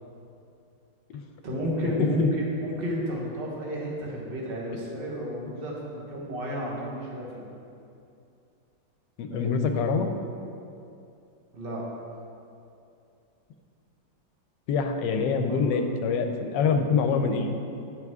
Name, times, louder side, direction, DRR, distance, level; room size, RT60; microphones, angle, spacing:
voice 1, 1.4-2.2 2.6-7.4 9.3-9.7 11.5-11.8 15.5-15.6, equal, 35° right, -3 dB, 1.3 m, -32 dB
voice 2, 9.2-10.1 14.7-17.5, left 5 dB, 75° left, 5 dB, 1.2 m, -25 dB
10.5 x 5.9 x 3.5 m, 2.6 s
omnidirectional pair, 2.0 m